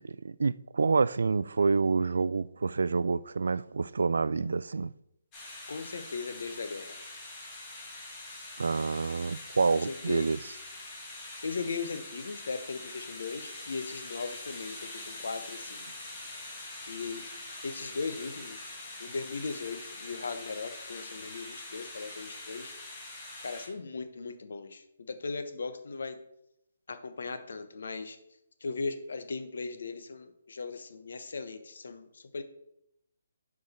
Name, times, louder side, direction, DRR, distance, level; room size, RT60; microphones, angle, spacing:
voice 1, 0.0-4.9 8.6-10.4, right 4 dB, 80° right, 0.3 m, -28 dB
sound 1, 5.3-23.7, left 2 dB, 15° left, 1.3 m, -44 dB
voice 2, 5.7-7.0 9.7-10.2 11.4-15.8 16.9-17.2 17.6-18.7 19.0-22.7 23.4-26.2 26.9-28.2 28.6-32.4, left 4 dB, 65° left, 0.9 m, -38 dB
7.9 x 4.9 x 4.3 m
hypercardioid pair, 175°, 0 cm